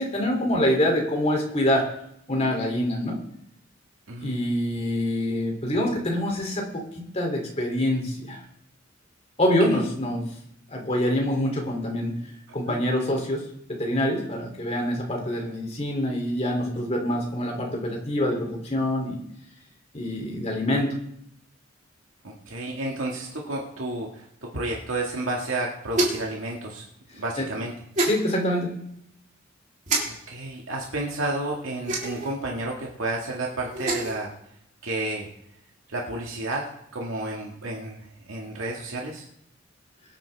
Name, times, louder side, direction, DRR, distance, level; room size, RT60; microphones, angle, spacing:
voice 1, 0.0-1.8 2.3-3.2 4.2-6.6 6.9-8.4 9.4-10.3 10.7-12.1 12.5-13.4 13.7-19.2 19.9-20.9 27.4-27.5 28.0-28.7, left 1 dB, 30° left, 0 dB, 3.1 m, -25 dB
voice 2, 4.1-4.4 12.7-12.8 22.2-26.8 27.1-27.7 30.1-34.3 34.8-35.3 35.9-39.3, right 2 dB, 90° right, -2 dB, 1.9 m, -31 dB
sound 1, 25.9-26.3 27.9-28.2 29.9-30.0 31.8-32.3 33.6-34.2, right 2 dB, 40° right, 3.4 m, -25 dB
23.5 x 9.2 x 3.5 m, 0.73 s
head